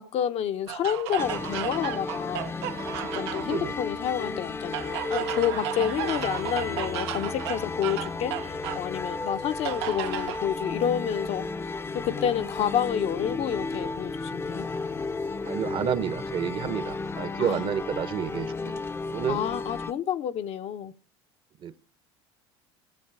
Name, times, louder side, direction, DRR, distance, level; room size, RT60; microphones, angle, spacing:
voice 1, 0.0-2.5 3.0-11.5 11.9-14.7 17.4-17.7 19.3-20.9, left 9 dB, 50° left, 0.9 m, -29 dB
sound 1, 0.7-3.6 4.7-8.9 9.6-10.4, right 13 dB, 80° right, 0.9 m, -34 dB
sound 2, 1.2-19.9, left 3 dB, 20° left, 0.7 m, -34 dB
voice 2, 3.4-3.8 6.0-6.1 15.4-18.7 19.1-19.4 21.6-21.8, right 8 dB, 40° right, 1.0 m, -30 dB
16.0 x 7.3 x 4.7 m
hypercardioid pair, 90°, 14 cm